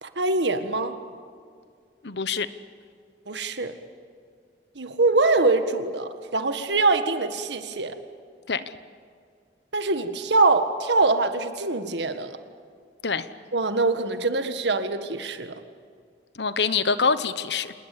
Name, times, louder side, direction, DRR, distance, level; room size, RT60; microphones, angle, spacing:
voice 1, 0.0-0.9 3.3-3.7 4.7-8.0 9.7-12.4 13.5-15.5, right 3 dB, 85° right, 9 dB, 1.7 m, -23 dB
voice 2, 2.0-2.5 8.5-8.6 13.0-13.3 16.3-17.7, left 5 dB, 75° left, 13 dB, 1.1 m, -25 dB
27.5 x 20.0 x 8.7 m, 2.2 s
head